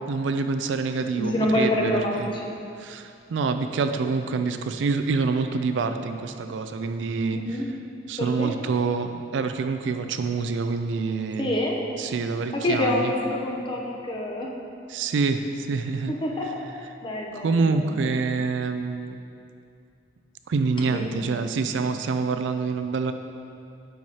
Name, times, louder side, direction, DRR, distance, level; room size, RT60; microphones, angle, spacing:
voice 1, 0.1-2.3 2.8-7.4 8.1-11.5 12.0-13.1 14.9-16.1 17.3-19.2 20.5-23.1, right 4 dB, 80° right, 8 dB, 0.4 m, -26 dB
voice 2, 1.1-2.5 7.3-7.7 8.2-8.5 11.4-11.8 12.5-14.5 16.1-18.0 20.9-21.2, left 1 dB, 25° left, -1 dB, 0.7 m, -27 dB
9.2 x 4.6 x 2.8 m, 2.5 s
head